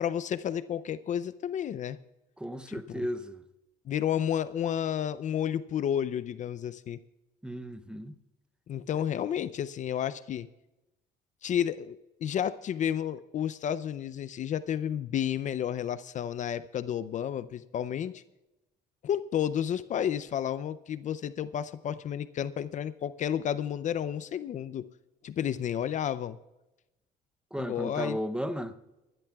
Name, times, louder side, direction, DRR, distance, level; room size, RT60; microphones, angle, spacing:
voice 1, 0.0-2.0 2.7-3.0 3.9-7.0 8.7-10.5 11.4-18.2 19.0-24.8 25.2-26.4 27.6-28.2, left 9 dB, 45° left, 0.5 m, -31 dB
voice 2, 2.4-3.4 7.4-8.2 27.5-28.7, equal, 5° right, 0.7 m, -35 dB
22.5 x 12.0 x 2.3 m
cardioid pair, 110°, 17 cm